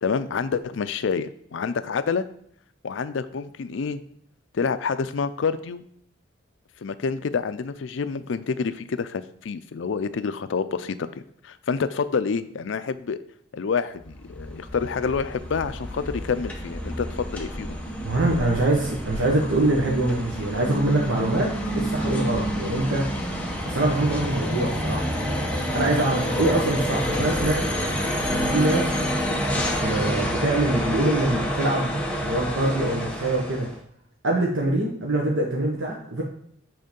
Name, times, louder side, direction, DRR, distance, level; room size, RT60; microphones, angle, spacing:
voice 1, 0.0-2.3 2.8-4.0 4.5-5.8 6.8-11.1 11.4-13.2 13.5-17.8 26.4-26.6, left 5 dB, 75° left, 13 dB, 0.4 m, -28 dB
sound 1, 14.0-33.8, equal, 5° left, 0.9 m, -28 dB
voice 2, 18.0-23.0 23.6-25.0 25.7-27.7 28.3-28.9 29.5-31.9 32.2-33.7 34.2-36.2, right 2 dB, 80° right, -2 dB, 1.2 m, -24 dB
7.8 x 3.7 x 5.2 m, 0.66 s
head